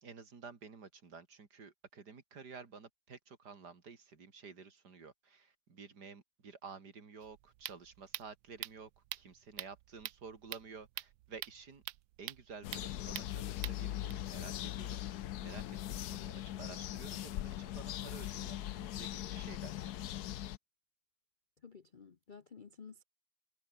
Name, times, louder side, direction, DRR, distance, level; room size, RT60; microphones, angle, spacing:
voice 1, 0.0-11.8 12.2-15.0 15.4-19.9, right 5 dB, 50° right, 2.9 m, -52 dB
sound 1, 7.2-14.1, right 15 dB, 75° right, 1.3 m, -46 dB
sound 2, 12.6-20.6, left 13 dB, 65° left, 1.0 m, -40 dB
voice 2, 21.6-23.0, left 5 dB, 85° left, 0.4 m, -53 dB
omnidirectional pair, 2.3 m